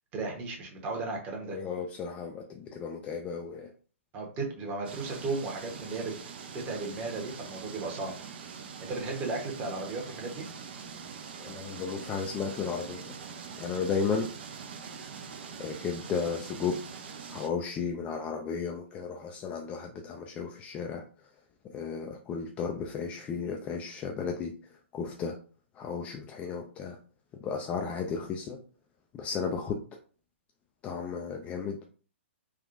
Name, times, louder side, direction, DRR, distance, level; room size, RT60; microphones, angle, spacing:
voice 1, 0.1-1.6 4.1-6.1 6.5-8.1 8.8-10.5, right 3 dB, 25° right, 0 dB, 1.0 m, -35 dB
voice 2, 1.5-3.7 11.4-13.1 13.6-14.3 15.6-16.7 17.3-21.3 21.6-25.4 25.7-27.0 27.4-28.6 29.1-29.8 30.8-31.9, left 5 dB, 20° left, 2 dB, 0.3 m, -34 dB
sound 1, 4.8-17.5, right 6 dB, 50° right, 0.5 m, -43 dB
3.4 x 2.3 x 2.5 m, 0.39 s
figure-of-eight pair, 120°, 7 cm